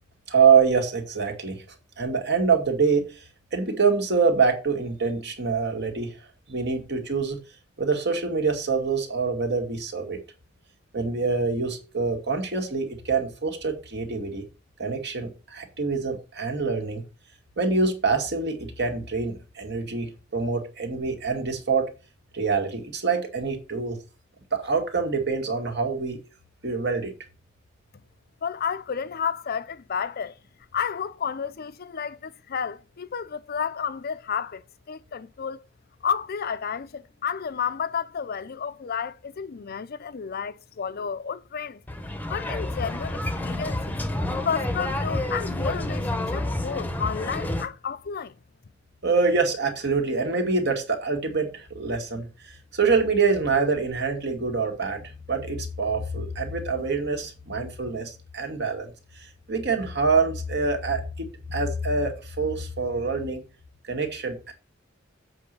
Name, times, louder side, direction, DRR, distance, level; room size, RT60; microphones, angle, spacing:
voice 1, 0.3-1.6 2.0-6.2 6.5-7.4 7.8-10.2 10.9-14.4 14.8-17.0 17.6-21.9 22.3-24.0 24.5-26.2 26.6-27.1 49.0-63.4 63.8-64.5, right 4 dB, 60° right, 2.1 m, -25 dB
voice 2, 28.4-30.4 30.7-35.6 36.0-41.8 42.3-44.0 44.4-48.3, left 7 dB, 50° left, 0.5 m, -31 dB
sound 1, 41.9-47.7, left 1 dB, 10° left, 0.9 m, -29 dB
7.8 x 4.7 x 6.8 m
head